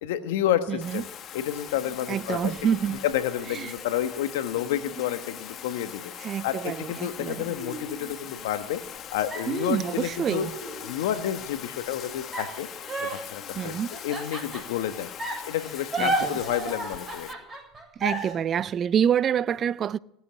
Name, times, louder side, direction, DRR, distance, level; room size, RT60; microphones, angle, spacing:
voice 1, 0.0-1.0 1.3-2.5 3.0-6.1 6.4-8.8 9.1-10.5 10.8-12.7 13.0-13.7 14.0-15.1 15.4-17.3, left 11 dB, 75° left, 1.2 m, -30 dB
voice 2, 0.7-1.0 2.1-3.0 3.5-3.7 6.2-7.5 9.5-10.5 13.6-13.9 16.0-16.4 18.0-20.0, right 8 dB, 40° right, 0.5 m, -27 dB
Bathtub (filling or washing), 0.8-17.3, left 9 dB, 45° left, 1.2 m, -41 dB
sound 1, 1.7-3.0 3.8-5.9 6.4-6.5 6.9-9.0 9.3-11.3 12.3-14.8 15.2-18.3, right 1 dB, 20° right, 7.7 m, -35 dB
18.5 x 8.2 x 9.2 m
hypercardioid pair, 90°, 0 cm